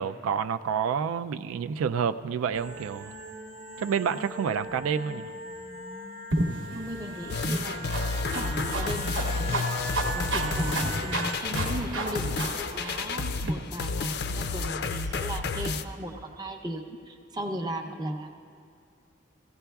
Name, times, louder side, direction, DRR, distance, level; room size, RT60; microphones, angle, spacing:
voice 1, 0.0-3.1 3.8-5.3, right 7 dB, 90° right, 10 dB, 0.3 m, -29 dB
sound 1, 2.5-11.4, right 1 dB, 40° right, 0.9 m, -40 dB
sound 2, 6.3-13.5, right 1 dB, 65° right, 1.0 m, -32 dB
voice 2, 6.7-9.7 10.1-18.3, right 1 dB, 20° right, 3 dB, 0.6 m, -36 dB
sound 3, 7.3-15.8, left 4 dB, 50° left, 0.4 m, -31 dB
16.5 x 15.5 x 2.3 m, 2.4 s
head